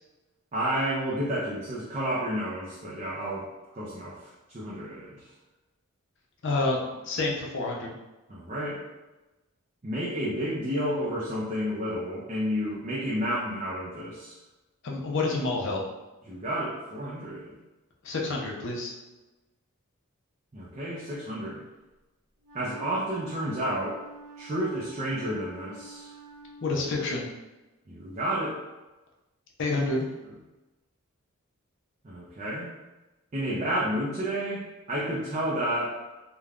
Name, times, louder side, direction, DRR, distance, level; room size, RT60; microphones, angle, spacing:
voice 1, 0.5-3.5 3.7-5.3 8.3-8.8 9.8-14.4 16.3-17.5 20.5-21.7 22.5-24.0 24.4-26.1 27.9-28.6 29.7-29.9 32.0-32.7 33.3-36.0, equal, 30° right, -6 dB, 0.4 m, -31 dB
voice 2, 6.4-7.9 14.8-15.8 18.0-18.9 26.6-27.3 29.6-30.1, left 3 dB, 55° left, -1 dB, 0.5 m, -28 dB
Wind instrument woodwind instrument, 22.4-26.9, right 3 dB, 75° right, 0.9 m, -47 dB
3.2 x 2.2 x 2.4 m, 1.1 s
head